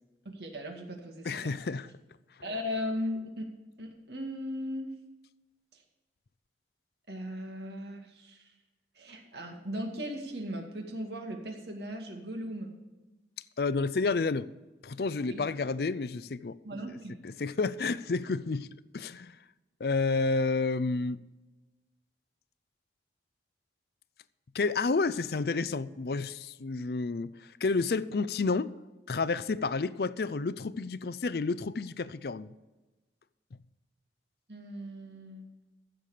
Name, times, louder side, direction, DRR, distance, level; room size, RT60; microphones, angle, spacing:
voice 1, 0.3-1.6 2.4-3.5 3.8-4.9 5.7-5.8 7.1-8.4 9.0-12.7 15.3-15.4 16.6-17.1 34.5-35.5, equal, 70° right, 2.1 m, -37 dB
voice 2, 1.2-1.9 13.6-14.5 14.8-16.6 17.2-18.7 18.9-19.4 19.8-21.2 24.5-28.7 29.1-32.5, left 4 dB, 60° left, 0.5 m, -30 dB
15.0 x 6.8 x 5.0 m
head